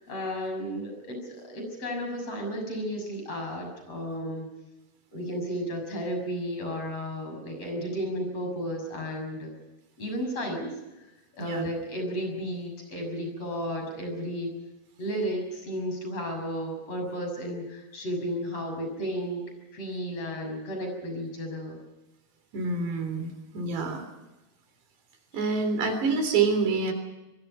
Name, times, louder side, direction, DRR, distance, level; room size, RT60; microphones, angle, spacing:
voice 1, 0.0-4.5 5.1-9.5 10.0-10.7 11.0-11.1 11.3-14.6 15.0-19.4 19.7-21.8 25.3-25.4, equal, 35° left, 3 dB, 7.5 m, -33 dB
voice 2, 22.5-24.0 25.3-26.9, right 4 dB, 85° right, 7 dB, 5.7 m, -27 dB
24.5 x 23.0 x 5.6 m, 1.0 s
omnidirectional pair, 4.7 m